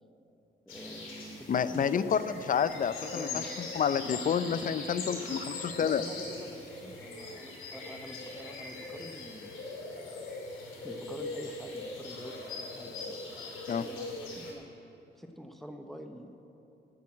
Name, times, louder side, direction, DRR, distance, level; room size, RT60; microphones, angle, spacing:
sound 1, 0.7-14.5, left 3 dB, 75° left, 2.8 m, -41 dB
voice 1, 0.7-2.2 3.1-3.5 4.0-5.4 5.8-10.3 10.8-14.6 15.2-16.4, equal, ahead, 5 dB, 0.8 m, -46 dB
voice 2, 1.5-6.0 13.7-13.8, left 7 dB, 45° left, 14 dB, 0.6 m, -29 dB
10.0 x 8.7 x 8.6 m, 2.9 s
cardioid pair, 90°, 20 cm